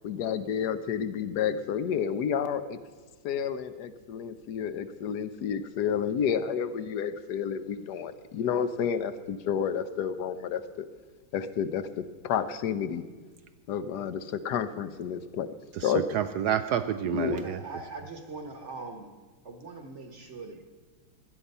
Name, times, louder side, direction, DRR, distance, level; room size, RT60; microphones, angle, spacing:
voice 1, 0.0-2.8 3.2-10.9 11.3-13.1 13.7-15.5 15.8-16.0 17.1-17.4, left 8 dB, 65° left, 12 dB, 1.2 m, -30 dB
voice 2, 15.7-17.6, right 9 dB, 75° right, 10 dB, 0.9 m, -29 dB
voice 3, 17.1-19.1 19.4-20.7, right 3 dB, 40° right, 5 dB, 1.3 m, -41 dB
17.0 x 12.0 x 5.5 m, 1.4 s
omnidirectional pair, 2.2 m